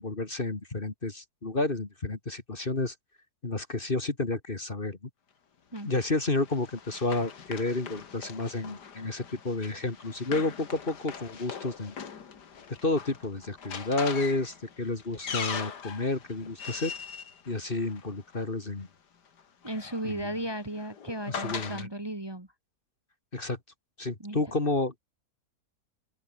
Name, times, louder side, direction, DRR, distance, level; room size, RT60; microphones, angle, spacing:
voice 1, 0.0-2.9 3.4-5.1 5.8-11.9 12.8-16.9 17.5-18.9 20.0-20.3 21.3-21.9 23.3-23.6 24.0-25.0, left 2 dB, 35° left, 2.3 m, -31 dB
Run, 5.8-18.4 19.4-21.9, left 6 dB, 90° left, 2.4 m, -41 dB
voice 2, 19.6-22.5 24.2-24.4, right 1 dB, 15° right, 1.9 m, -35 dB
open air
omnidirectional pair, 1.7 m